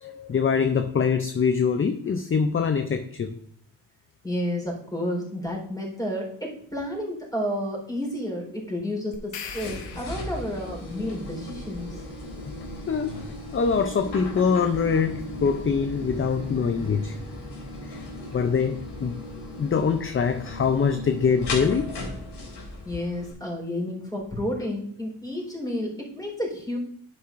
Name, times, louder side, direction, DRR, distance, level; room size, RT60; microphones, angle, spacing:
voice 1, 0.0-3.4 12.3-12.5 12.9-17.2 17.8-18.1 18.3-19.2 19.6-22.0, left 6 dB, 30° left, 0.5 m, -24 dB
voice 2, 4.2-12.0 22.8-26.8, left 1 dB, 10° left, 4.0 m, -31 dB
sound 1, 9.1-10.7, left 7 dB, 85° left, 1.1 m, -40 dB
sound 2, 9.4-23.3, left 1 dB, 65° left, 3.4 m, -37 dB
sound 3, 12.9-13.4 15.0-18.9, right 1 dB, 65° right, 2.0 m, -43 dB
10.5 x 8.4 x 2.5 m
cardioid pair, 110°, 43 cm